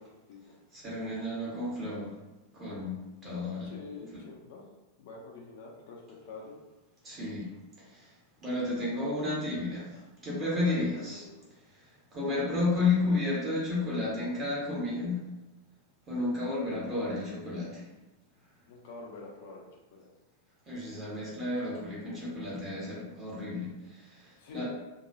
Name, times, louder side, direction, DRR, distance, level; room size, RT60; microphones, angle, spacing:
voice 1, 0.0-0.5 3.6-4.6 5.0-6.6 9.9-10.1 10.4-11.4 18.7-19.7 19.9-20.1 24.4-24.6, left 3 dB, 55° left, -1 dB, 0.5 m, -46 dB
voice 2, 0.7-2.1 2.5-3.7 7.0-7.5 7.9-8.1 8.4-9.9 10.2-11.2 11.7-15.2 16.1-17.8 20.6-24.6, left 2 dB, 25° right, -7 dB, 1.2 m, -32 dB
3.0 x 2.2 x 2.6 m, 1.0 s
figure-of-eight pair, 90°, 0 cm